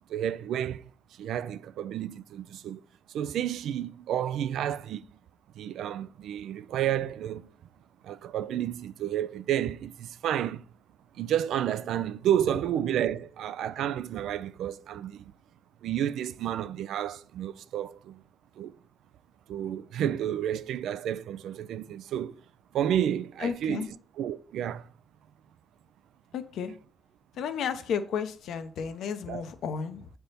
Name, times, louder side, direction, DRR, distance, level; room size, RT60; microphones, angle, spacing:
voice 1, 0.1-0.8 1.2-2.8 3.1-5.1 5.6-7.5 8.0-10.6 11.2-15.3 15.8-18.2 18.6-18.7 19.5-22.4 22.7-23.8 24.2-24.9 29.3-29.4, right 10 dB, 80° right, 0.4 m, -31 dB
voice 2, 23.4-23.9 26.3-26.7 27.3-30.1, left 7 dB, 75° left, 0.7 m, -33 dB
7.8 x 3.4 x 4.2 m
cardioid pair, 90°, 0 cm